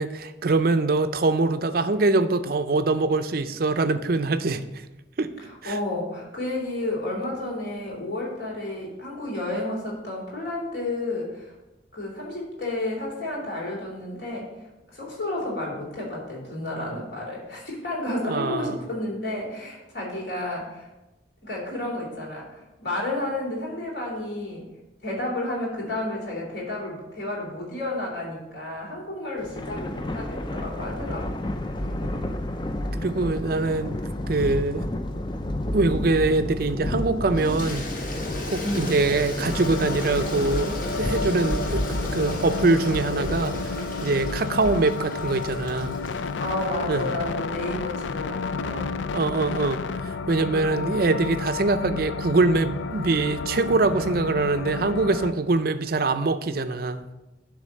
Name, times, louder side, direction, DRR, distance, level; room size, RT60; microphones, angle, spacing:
voice 1, 0.0-4.8 5.2-5.3 5.6-5.8 18.2-18.8 32.9-33.9 34.3-34.9 35.7-37.9 38.5-41.8 42.1-46.0 46.9-47.1 49.1-57.0, right 3 dB, 50° right, 10 dB, 0.5 m, -23 dB
voice 2, 5.4-11.5 11.9-14.5 14.9-20.9 21.4-24.6 25.0-31.5 31.8-32.2 38.6-39.0 46.4-48.9, left 1 dB, 60° left, -3 dB, 3.3 m, -31 dB
Thunder, 29.4-46.0, left 1 dB, 25° left, 0.5 m, -32 dB
Toilet flush, 37.3-46.7, left 2 dB, 45° left, 1.1 m, -35 dB
sound 1, 39.5-55.3, left 4 dB, 75° left, 0.4 m, -31 dB
10.5 x 3.6 x 6.4 m, 1.0 s
head